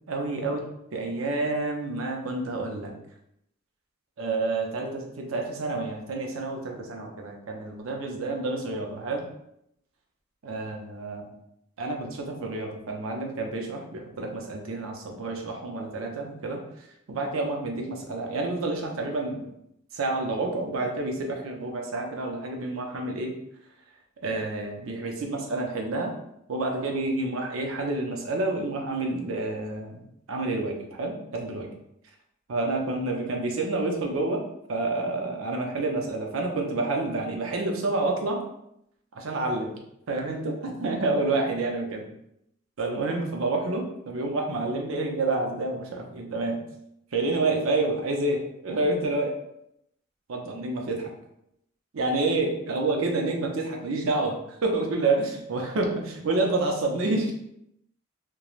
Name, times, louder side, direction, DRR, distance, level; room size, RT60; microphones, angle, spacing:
voice 1, 0.1-2.9 4.2-9.3 10.4-11.3 11.8-19.5 19.9-23.3 24.2-26.2 26.5-30.0 30.3-31.7 32.5-34.4 34.7-38.4 39.1-39.7 40.1-42.0 42.8-46.6 47.1-49.4 50.3-51.1 51.9-57.3, right 2 dB, 85° right, 2 dB, 0.5 m, -29 dB
3.0 x 2.2 x 2.4 m, 0.78 s
head